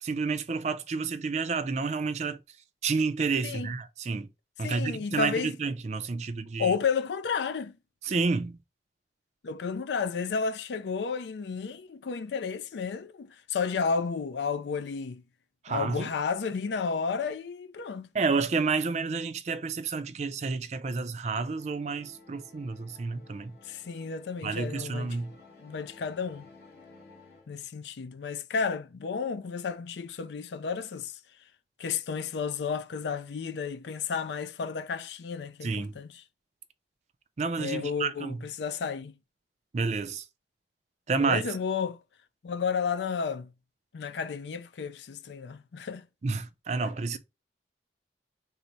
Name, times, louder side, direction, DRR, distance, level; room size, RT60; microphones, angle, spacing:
voice 1, 0.0-2.4 2.8-4.3 4.6-6.7 8.0-8.6 15.6-16.1 18.1-23.5 24.4-25.4 35.6-35.9 37.4-38.4 39.7-40.3 41.1-41.5 46.2-47.2, right 4 dB, 40° right, 0.4 m, -30 dB
voice 2, 3.4-3.7 4.6-5.6 6.6-7.8 9.4-15.2 15.7-18.1 23.6-25.2 25.6-26.5 27.5-31.2 31.8-36.2 37.6-39.2 41.2-42.0 42.4-43.5 43.9-46.0, left 5 dB, 80° left, 0.4 m, -32 dB
sound 1, 21.1-27.5, left 3 dB, 60° left, 1.6 m, -55 dB
3.9 x 2.1 x 4.4 m
head